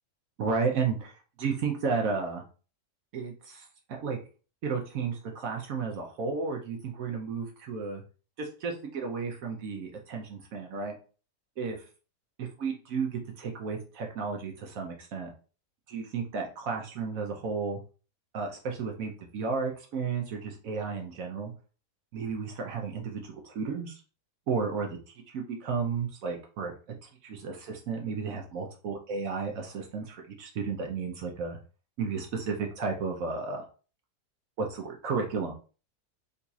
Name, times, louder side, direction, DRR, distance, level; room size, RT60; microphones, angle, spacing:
voice 1, 0.4-1.1 1.4-2.4 3.1-4.2 4.6-8.0 8.4-10.9 11.6-11.8 12.4-15.3 15.9-17.8 18.3-21.5 22.1-24.0 24.5-25.0 25.3-26.7 27.0-31.6 32.0-33.6 34.6-35.5, right 5 dB, 65° right, 2 dB, 1.0 m, -33 dB
3.9 x 2.7 x 2.3 m, 0.37 s
omnidirectional pair, 1.7 m